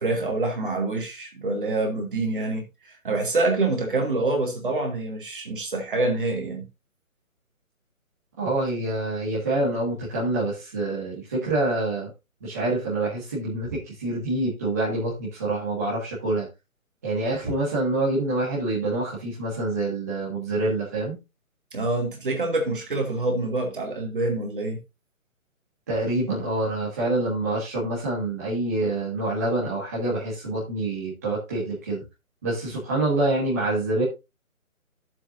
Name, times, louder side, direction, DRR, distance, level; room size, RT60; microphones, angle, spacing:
voice 1, 0.0-6.7 21.7-24.8, right 2 dB, 40° right, 2.6 m, -26 dB
voice 2, 8.4-12.1 12.4-16.5 17.0-21.2 25.9-32.0 32.4-34.0, right 2 dB, 10° right, 1.8 m, -26 dB
13.0 x 7.5 x 2.6 m
hypercardioid pair, 180°, 41 cm